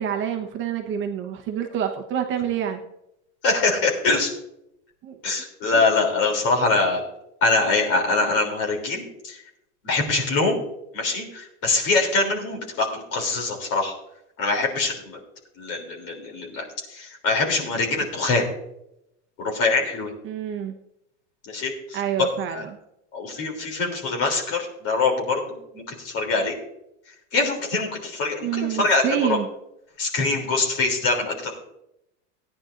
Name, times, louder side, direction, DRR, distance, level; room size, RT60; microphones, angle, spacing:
voice 1, 0.0-2.8 5.0-5.2 5.7-5.8 18.0-18.1 20.2-20.8 21.9-22.8 28.4-29.5, right 9 dB, 30° right, 3 dB, 1.0 m, -27 dB
voice 2, 3.4-4.3 5.2-7.0 7.4-9.4 9.8-10.6 10.9-13.9 14.4-15.2 15.6-16.7 16.9-18.4 19.4-20.1 21.5-22.3 22.5-22.6 23.1-26.6 27.3-29.4 30.0-31.6, left 3 dB, 40° left, 2 dB, 3.3 m, -24 dB
18.0 x 10.0 x 2.6 m, 0.83 s
supercardioid pair, 150°, 37 cm